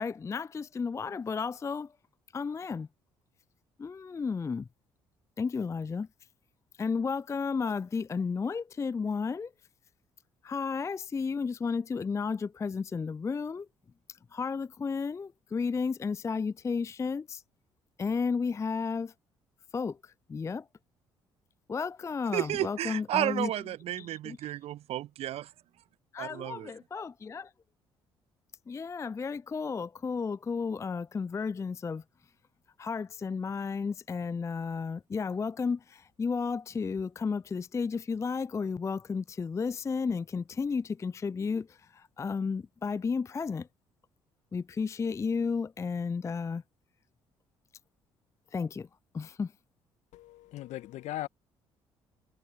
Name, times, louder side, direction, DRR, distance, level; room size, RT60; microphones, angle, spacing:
voice 1, 0.0-1.9 2.3-2.9 3.8-4.7 5.4-6.1 6.8-9.5 10.4-13.7 14.1-17.4 18.0-19.1 19.7-20.7 21.7-23.5 24.0-24.4 26.1-27.5 28.7-32.0 32.8-43.7 44.5-46.6 48.5-48.9 49.1-49.5, left 5 dB, 20° left, 0.4 m, -33 dB
voice 2, 22.3-25.5 26.2-26.7, right 13 dB, 50° right, 0.4 m, -32 dB
voice 3, 50.1-51.3, left 14 dB, 65° left, 1.9 m, -38 dB
hypercardioid pair, 50°, 13 cm